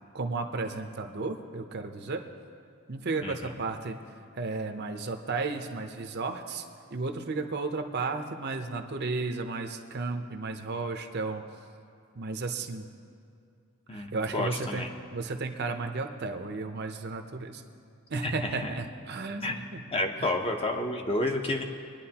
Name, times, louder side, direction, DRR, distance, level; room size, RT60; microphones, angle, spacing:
voice 1, 0.1-2.2 2.9-4.0 4.4-6.6 6.9-11.4 12.2-12.9 13.9-14.8 15.1-17.6 18.1-19.8 20.2-20.3, right 3 dB, 45° right, 5 dB, 0.7 m, -33 dB
voice 2, 13.9-14.9 18.2-18.7 19.4-19.5 19.9-21.6, left 2 dB, 25° left, 3 dB, 0.8 m, -30 dB
22.5 x 10.0 x 2.9 m, 2.4 s
head